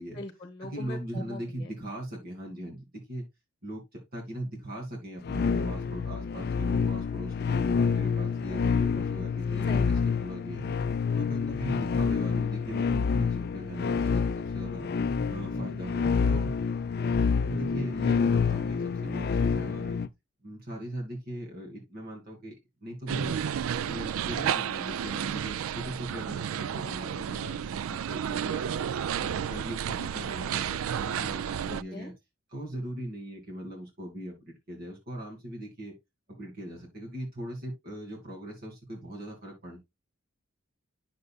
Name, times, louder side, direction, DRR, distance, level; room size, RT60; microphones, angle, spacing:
voice 1, 0.0-1.7 9.7-10.3 31.7-32.1, left 2 dB, 25° left, 1.2 m, -42 dB
voice 2, 0.6-3.3 3.6-10.7 11.2-14.9 15.3-16.5 17.4-20.0 20.4-22.5 22.8-23.4 23.8-28.8 29.2-32.1 32.5-35.9 36.3-39.8, right 1 dB, 45° right, 2.6 m, -39 dB
sound 1, 5.2-20.1, left 5 dB, 50° left, 0.4 m, -28 dB
sound 2, 23.1-31.8, right 8 dB, 80° right, 0.3 m, -32 dB
9.6 x 6.7 x 2.3 m
head